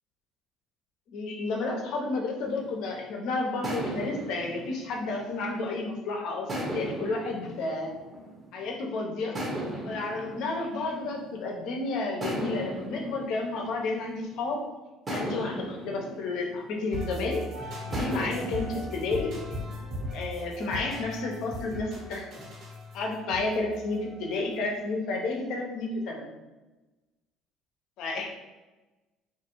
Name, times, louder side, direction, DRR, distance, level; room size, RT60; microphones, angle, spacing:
voice 1, 1.1-7.9 8.5-9.4 9.8-14.7 15.1-17.4 17.8-19.3 20.1-22.2 22.9-26.3 28.0-28.3, left 3 dB, 70° left, 0 dB, 0.6 m, -31 dB
sound 1, 2.4-3.0 3.6-5.9 6.5-8.7 9.3-11.6 12.2-14.5 15.1-17.3 17.9-20.2, right 1 dB, 30° right, 0.8 m, -37 dB
sound 2, 16.9-24.7, equal, 60° right, 1.3 m, -38 dB
2.5 x 2.4 x 2.9 m, 1.1 s
supercardioid pair, 80°, 0 cm